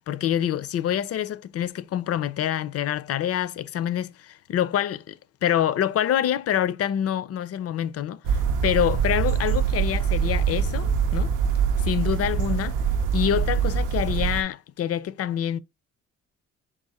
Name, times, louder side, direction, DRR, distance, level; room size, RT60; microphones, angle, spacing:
voice 1, 0.1-8.2 8.6-11.3 11.8-12.8 13.1-15.6, left 10 dB, 50° left, 0.4 m, -26 dB
sound 1, 8.2-14.4, right 7 dB, 90° right, 0.6 m, -24 dB
3.7 x 2.6 x 4.1 m
cardioid pair, 75°, 31 cm